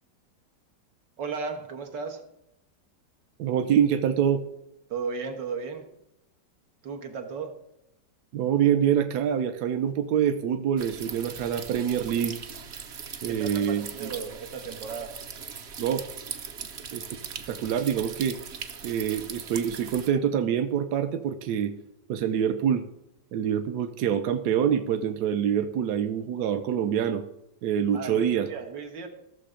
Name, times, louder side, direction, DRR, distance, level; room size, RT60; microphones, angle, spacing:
voice 1, 1.2-2.2 4.9-5.9 6.8-7.5 13.3-15.1 27.9-29.1, right 5 dB, 85° right, 4 dB, 2.1 m, -35 dB
voice 2, 3.4-4.4 8.3-12.4 13.2-14.1 15.8-16.0 16.9-17.0 17.5-18.4 18.8-21.7 22.1-22.8 23.3-27.2 27.6-28.5, right 9 dB, 70° right, 8 dB, 1.2 m, -25 dB
sound 1, 10.8-20.1, right 6 dB, 50° right, 0.9 m, -40 dB
14.5 x 6.7 x 5.0 m, 0.83 s
omnidirectional pair, 1.9 m